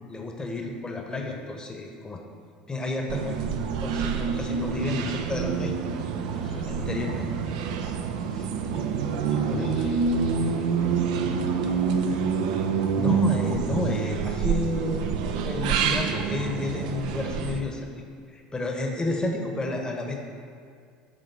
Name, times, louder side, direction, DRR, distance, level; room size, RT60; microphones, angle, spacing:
voice 1, 0.1-2.2 2.7-5.7 6.7-7.5 8.3-8.5 9.2-9.7 13.0-15.1 15.4-17.9 18.3-20.2, left 2 dB, 20° left, 2 dB, 1.1 m, -31 dB
sound 1, 3.1-17.6, right 6 dB, 70° right, 0.6 m, -27 dB
voice 2, 6.3-6.9 8.7-12.0, left 1 dB, 90° left, -4 dB, 1.5 m, -42 dB
9.4 x 3.7 x 6.7 m, 2.3 s
hypercardioid pair, 75°, 4 cm